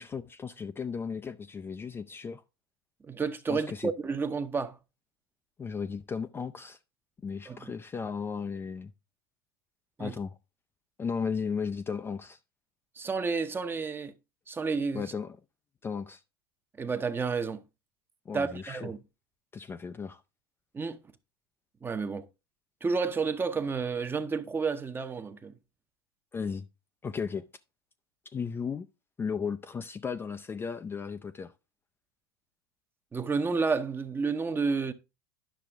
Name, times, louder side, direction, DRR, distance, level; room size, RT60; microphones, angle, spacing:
voice 1, 0.0-2.4 3.5-3.9 5.6-6.8 7.2-8.9 10.0-10.4 11.0-12.4 14.9-15.4 15.8-16.2 18.3-18.9 19.5-20.2 26.3-26.7 27.0-27.4 28.3-28.9 29.2-31.5, left 6 dB, 20° left, 0.4 m, -35 dB
voice 2, 3.1-4.8 7.5-7.8 10.0-10.1 13.0-14.1 14.5-15.1 16.8-17.6 18.3-19.0 20.7-21.0 21.8-22.2 22.8-25.5 33.1-34.9, right 4 dB, 20° right, 0.8 m, -30 dB
10.5 x 5.9 x 3.5 m
hypercardioid pair, 95°, 12 cm